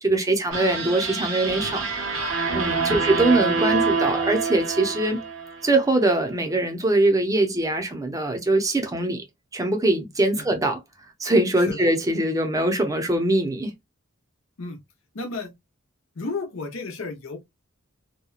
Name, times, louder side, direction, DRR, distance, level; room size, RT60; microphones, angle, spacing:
voice 1, 0.0-1.9 2.5-5.2 5.6-9.2 9.5-10.8 11.2-13.7, right 2 dB, 15° right, 0.6 m, -22 dB
sound 1, 0.5-5.8, right 4 dB, 85° right, 0.8 m, -26 dB
voice 2, 15.1-15.5 16.2-17.4, left 3 dB, 80° left, 0.8 m, -32 dB
2.8 x 2.2 x 2.3 m
head